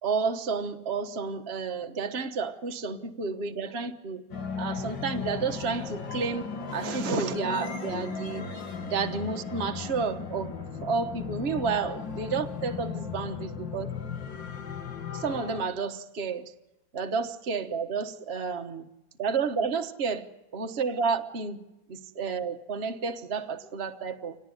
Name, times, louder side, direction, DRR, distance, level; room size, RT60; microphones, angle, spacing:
voice 1, 0.0-4.2 4.6-8.6 8.9-10.5 10.8-13.9 15.1-16.5 16.9-18.9 19.2-21.6 21.9-24.4, right 5 dB, 35° right, 5 dB, 1.3 m, -31 dB
sound 1, 4.3-15.6, left 5 dB, 70° left, 2.6 m, -36 dB
27.0 x 18.5 x 9.9 m, 0.98 s
omnidirectional pair, 2.1 m